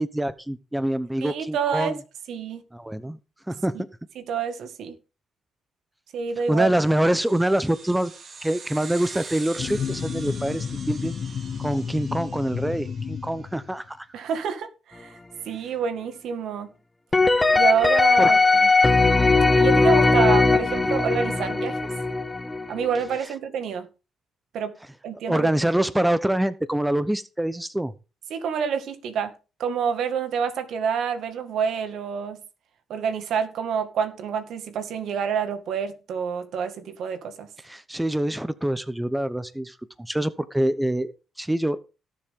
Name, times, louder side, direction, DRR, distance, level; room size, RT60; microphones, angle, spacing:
voice 1, 0.0-1.9 2.7-3.2 3.5-3.9 6.5-8.1 8.4-11.1 11.6-14.1 18.2-18.3 25.3-27.9 37.6-41.8, right 1 dB, 5° right, 0.9 m, -25 dB
voice 2, 1.2-1.9 2.3-2.6 3.7-3.8 4.2-5.0 6.1-6.7 14.1-15.1 15.5-16.7 17.5-18.4 19.6-21.8 22.7-23.9 24.5-24.8 25.0-25.5 28.3-29.3 29.6-32.4 32.9-37.5, right 7 dB, 75° right, 2.0 m, -27 dB
sound 1, 6.5-13.4, right 4 dB, 50° right, 3.1 m, -44 dB
sound 2, 9.6-13.9, left 7 dB, 55° left, 1.3 m, -32 dB
sound 3, 17.1-23.0, left 3 dB, 15° left, 1.5 m, -19 dB
18.0 x 7.3 x 3.7 m
cardioid pair, 90°, 0 cm